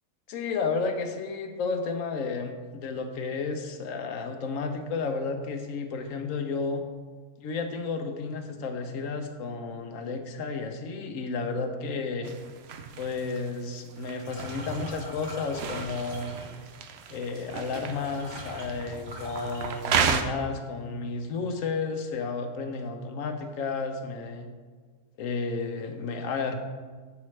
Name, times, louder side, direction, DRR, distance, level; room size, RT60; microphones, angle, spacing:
voice 1, 0.3-6.8 7.4-12.3 13.0-16.4 17.1-24.5 25.2-26.5, left 4 dB, 70° left, 6 dB, 1.1 m, -32 dB
sound 1, 12.2-20.2, right 7 dB, 65° right, 0.7 m, -33 dB
sound 2, 14.2-16.8 17.6-17.7 17.9-20.4 20.7-21.2 21.5-22.2, right 1 dB, 40° right, 1.5 m, -43 dB
8.3 x 5.8 x 3.2 m, 1.5 s
omnidirectional pair, 1.5 m